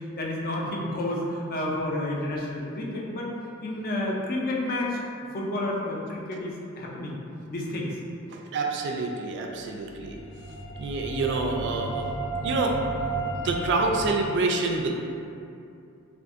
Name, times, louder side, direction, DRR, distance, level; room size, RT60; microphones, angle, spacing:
voice 1, 0.2-3.3 3.6-5.0 5.3-7.2 7.5-7.9, left 1 dB, 45° left, -2 dB, 0.4 m, -30 dB
voice 2, 8.3-10.2 10.8-12.1 12.4-12.7 13.3-15.0, right 3 dB, 55° right, 2 dB, 0.3 m, -27 dB
sound 1, 9.7-14.0, right 2 dB, 80° left, 0.8 m, -33 dB
2.5 x 2.5 x 3.5 m, 2.6 s
head